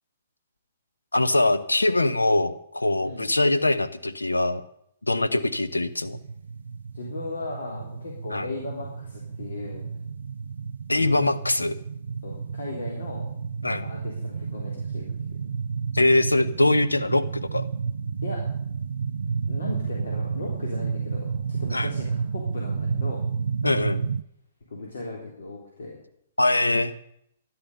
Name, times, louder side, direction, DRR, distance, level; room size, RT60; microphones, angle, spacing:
voice 1, 1.1-4.6 5.1-6.2 8.3-8.5 10.9-11.8 13.6-13.9 15.9-17.6 21.7-21.9 23.6-24.0 26.4-26.9, left 2 dB, 90° left, 11 dB, 1.1 m, -22 dB
sound 1, 5.4-24.2, right 5 dB, 70° right, 0.4 m, -31 dB
voice 2, 6.9-9.9 10.9-11.4 12.2-13.3 13.8-15.1 18.2-18.4 19.5-23.2 24.7-26.0, left 2 dB, 70° left, -2 dB, 3.7 m, -37 dB
13.5 x 11.5 x 6.8 m, 0.73 s
figure-of-eight pair, 120°, 0 cm